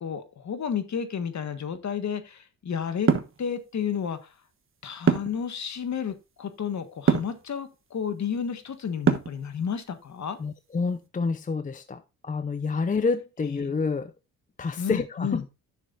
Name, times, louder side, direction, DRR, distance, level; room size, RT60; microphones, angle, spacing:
voice 1, 0.0-3.1 3.4-4.3 4.8-10.4 13.4-13.7 14.8-15.4, left 7 dB, 45° left, 1.4 m, -31 dB
sound 1, 3.1-3.4 5.1-5.4 7.1-7.4 9.1-9.4, right 6 dB, 35° right, 1.2 m, -22 dB
voice 2, 10.4-14.1 14.6-15.4, left 4 dB, 20° left, 0.6 m, -28 dB
10.5 x 6.6 x 2.6 m
supercardioid pair, 75°, 38 cm